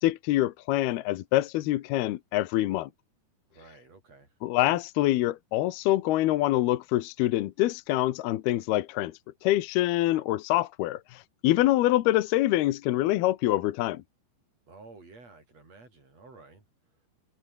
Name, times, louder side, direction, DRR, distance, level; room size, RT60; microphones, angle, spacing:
voice 1, 0.0-2.9 4.4-14.0, left 15 dB, 70° left, 2.7 m, -25 dB
voice 2, 3.5-4.4 14.7-16.6, right 3 dB, 35° right, 9.0 m, -52 dB
omnidirectional pair, 5.2 m